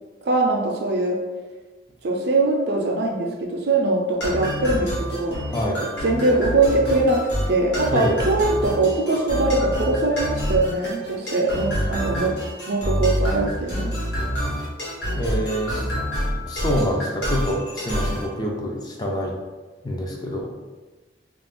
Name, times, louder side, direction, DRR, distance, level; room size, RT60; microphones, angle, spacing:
voice 1, 0.2-1.2 2.0-5.4 6.0-12.4 12.7-13.9, right 2 dB, 60° right, 2 dB, 0.4 m, -22 dB
sound 1, 4.2-18.3, equal, 75° left, 1.1 m, -27 dB
voice 2, 5.5-5.8 7.9-8.2 15.2-15.8 16.5-19.3 19.8-20.5, equal, 20° left, -1 dB, 0.4 m, -26 dB
2.5 x 2.3 x 3.4 m, 1.3 s
head